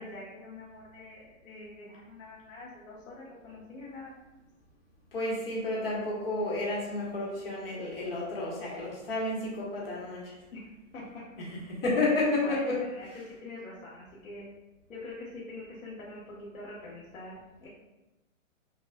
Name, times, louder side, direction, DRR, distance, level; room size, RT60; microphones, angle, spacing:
voice 1, 0.0-4.2 10.5-11.2 12.4-12.6 12.9-13.1 13.4-14.4 14.9-17.7, left 2 dB, 75° left, -6 dB, 1.2 m, -45 dB
voice 2, 5.1-10.3 11.4-12.8 13.1-13.2, left 2 dB, 45° left, -4 dB, 1.2 m, -31 dB
5.9 x 2.4 x 2.2 m, 1.0 s
hypercardioid pair, 180°, 40 cm